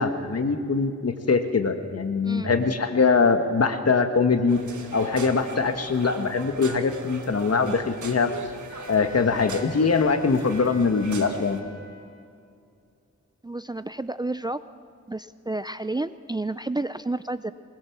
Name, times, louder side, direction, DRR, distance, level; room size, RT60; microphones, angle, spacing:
voice 1, 0.0-4.6 4.9-8.3 8.9-11.6, left 4 dB, 55° left, 7 dB, 1.6 m, -22 dB
voice 2, 2.2-2.6 13.4-14.6 15.1-17.5, right 2 dB, 15° right, 12 dB, 0.4 m, -30 dB
sound 1, 4.5-11.6, right 4 dB, 90° right, 1.6 m, -40 dB
Wind instrument woodwind instrument, 8.7-12.1, left 4 dB, 85° left, 3.1 m, -45 dB
23.5 x 20.5 x 7.3 m, 2.4 s
wide cardioid pair, 105°, 29 cm